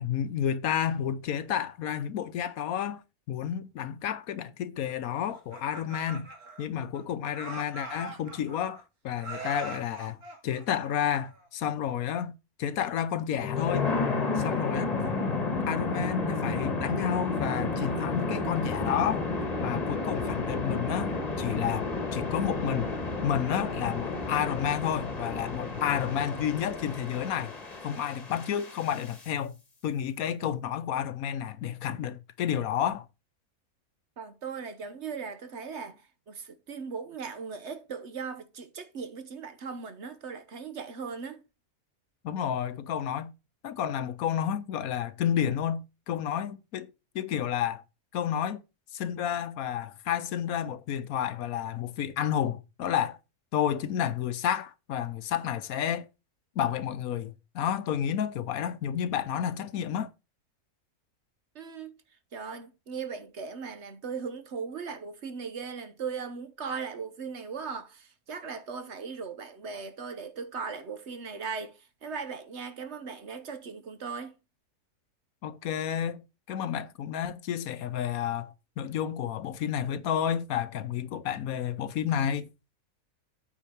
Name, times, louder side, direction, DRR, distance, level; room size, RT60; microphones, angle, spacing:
voice 1, 0.0-3.0 3.3-6.3 6.6-10.2 10.4-13.9 14.4-14.9 15.7-19.3 19.6-22.9 23.2-27.6 27.8-29.6 29.8-33.0 42.2-43.3 43.6-46.9 47.1-47.8 48.1-48.6 48.9-53.2 53.5-56.1 56.6-60.1 75.4-82.7, left 9 dB, 75° left, 1.2 m, -31 dB
Laughter, 5.3-7.0 7.3-8.8 9.2-11.5, right 1 dB, 85° right, 2.8 m, -41 dB
sound 1, 13.3-29.2, left 3 dB, 30° left, 1.4 m, -32 dB
voice 2, 34.2-36.0 36.3-41.4 61.5-61.9 62.3-74.3, right 5 dB, 55° right, 1.2 m, -38 dB
8.8 x 4.5 x 5.8 m
omnidirectional pair, 1.5 m